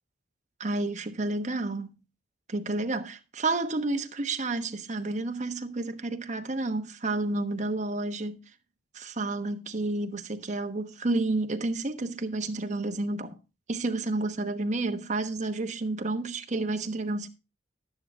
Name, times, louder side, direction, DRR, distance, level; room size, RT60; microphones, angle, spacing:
voice 1, 0.6-2.0 2.5-8.5 8.9-13.4 13.7-17.3, right 2 dB, 45° right, 1.1 m, -30 dB
12.0 x 9.5 x 3.6 m
head